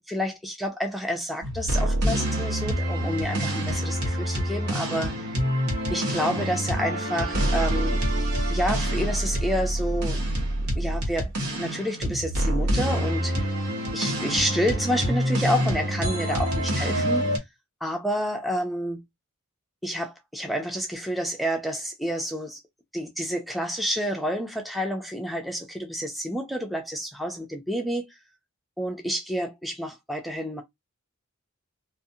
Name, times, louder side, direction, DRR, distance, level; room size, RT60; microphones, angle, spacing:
voice 1, 0.1-5.4 5.9-8.0 8.5-10.2 10.8-11.3 11.6-13.5 13.9-17.3 17.8-19.0 19.8-22.6 22.9-28.1 28.8-30.6, equal, ahead, 0.4 m, -29 dB
sound 1, 1.4-17.4, equal, 75° right, 1.1 m, -26 dB
2.5 x 2.4 x 2.6 m
head